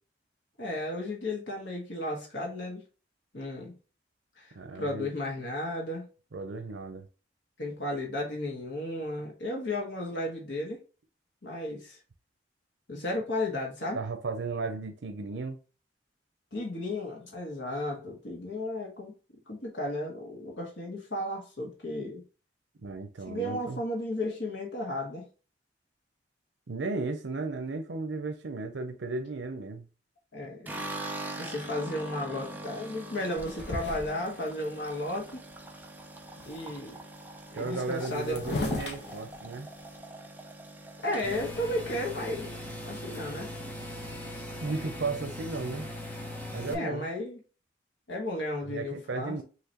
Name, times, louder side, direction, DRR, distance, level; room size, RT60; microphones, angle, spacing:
voice 1, 0.6-2.8 3.3-3.7 4.4-6.0 7.6-10.8 11.4-12.0 12.9-14.0 16.5-19.1 19.5-22.2 23.3-25.3 30.3-30.8 31.4-35.4 36.4-37.0 37.5-38.7 41.0-43.5 46.7-47.4 48.1-49.3, left 1 dB, 85° left, 1.6 m, -34 dB
voice 2, 4.6-5.1 6.3-7.1 13.9-15.6 22.8-23.8 26.7-29.8 37.5-39.7 44.6-45.9 46.5-47.1 48.6-49.4, right 3 dB, 90° right, 0.6 m, -35 dB
sound 1, 30.6-42.9 43.2-43.9 44.1-44.2 44.5-45.2, right 1 dB, 10° right, 0.6 m, -43 dB
sound 2, 33.3-34.5 35.0-35.1 35.3-35.8 36.1-36.8 37.6-37.7 37.9-40.0, left 2 dB, 65° left, 1.0 m, -37 dB
sound 3, 41.2-46.7, left 1 dB, 10° left, 0.9 m, -39 dB
5.8 x 3.0 x 2.9 m
head